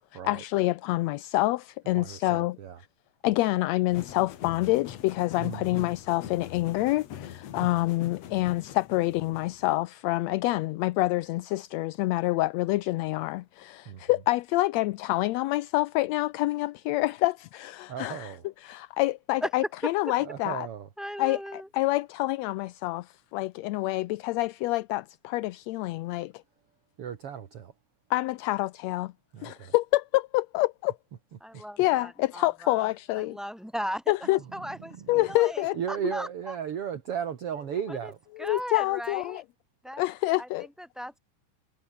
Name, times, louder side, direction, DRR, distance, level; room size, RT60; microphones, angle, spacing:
voice 1, 0.2-2.6 3.2-18.3 18.6-20.7 21.2-26.3 28.1-29.1 29.4-31.0 31.5-33.4 34.1-34.4 35.1-35.8 38.4-39.4 40.0-40.7, left 18 dB, 75° left, 1.6 m, -27 dB
voice 2, 1.9-2.8 5.4-5.9 7.5-7.7 13.9-14.0 17.9-18.4 20.2-20.9 27.0-27.7 29.3-29.7 34.2-34.6 34.9-35.2 35.7-38.2, right 8 dB, 55° right, 2.5 m, -36 dB
sound 1, 3.9-9.7, left 10 dB, 60° left, 2.5 m, -43 dB
voice 3, 21.0-21.7 31.4-32.9 33.2-34.0 34.5-36.6 37.9-38.1 38.4-39.4 39.8-40.0 40.4-40.5 40.8-41.2, equal, ahead, 7.2 m, -37 dB
omnidirectional pair, 3.5 m